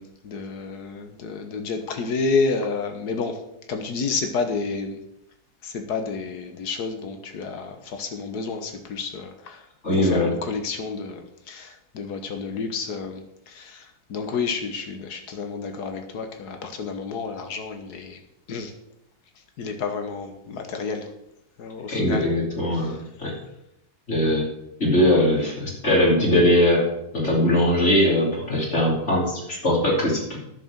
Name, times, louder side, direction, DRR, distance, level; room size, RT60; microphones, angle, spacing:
voice 1, 0.0-3.4 3.7-5.0 5.6-9.6 9.9-18.2 18.5-18.7 19.6-21.1 21.6-22.4 22.7-23.0, left 4 dB, 85° left, 5 dB, 1.8 m, -30 dB
voice 2, 9.8-10.3 21.9-23.3 24.1-24.5 24.8-30.4, left 1 dB, 45° left, -3 dB, 3.8 m, -21 dB
10.5 x 6.7 x 7.3 m, 0.81 s
omnidirectional pair, 1.7 m